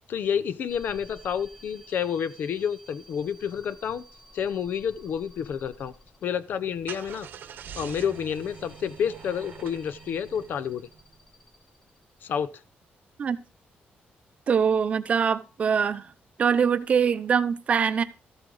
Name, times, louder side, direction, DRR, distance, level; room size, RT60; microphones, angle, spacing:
voice 1, 0.1-4.0 4.3-5.9 6.2-7.3 7.8-10.9 12.2-12.6, left 8 dB, 60° left, 0.6 m, -29 dB
sound 1, 0.7-6.5 7.3-12.3, equal, 15° left, 1.8 m, -53 dB
Car / Engine starting, 6.5-11.1, right 8 dB, 65° right, 0.9 m, -44 dB
voice 2, 14.5-16.0 16.4-18.0, right 6 dB, 35° right, 0.6 m, -23 dB
14.0 x 7.9 x 3.9 m
wide cardioid pair, 180°, 4 cm